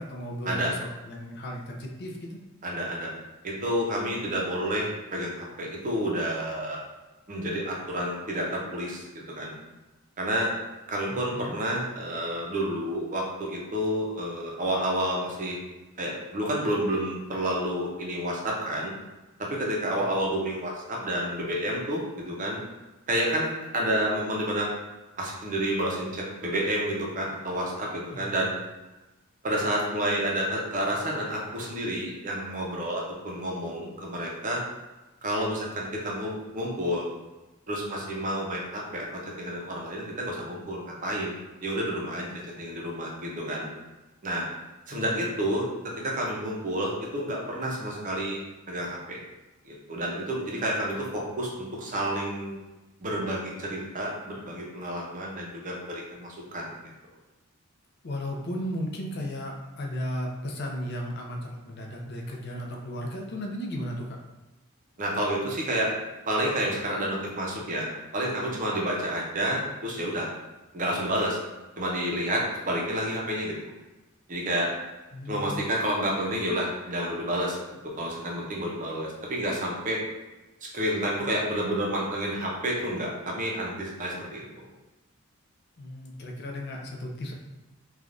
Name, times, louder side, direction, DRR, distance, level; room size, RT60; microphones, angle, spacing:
voice 1, 0.0-2.4 11.1-11.6 19.9-20.1 28.1-28.5 44.9-45.5 58.0-64.2 75.1-75.7 85.8-87.3, equal, 50° left, 0 dB, 0.5 m, -35 dB
voice 2, 2.6-3.1 3.4-6.8 7.3-9.0 9.4-9.6 10.2-10.5 10.9-15.6 16.0-18.9 19.5-22.6 23.1-24.7 25.2-26.1 26.4-28.5 29.4-34.6 35.2-37.1 37.7-39.1 39.4-42.3 42.6-43.7 44.2-44.5 44.9-45.6 46.0-48.4 48.7-49.2 49.6-52.6 53.0-56.7 65.0-65.9 66.2-67.9 68.1-70.3 70.7-71.4 71.8-73.7 74.3-74.7 75.3-77.6 78.0-80.0 80.7-84.7, right 1 dB, 35° right, -2 dB, 0.6 m, -29 dB
3.2 x 2.3 x 2.5 m, 1.1 s
head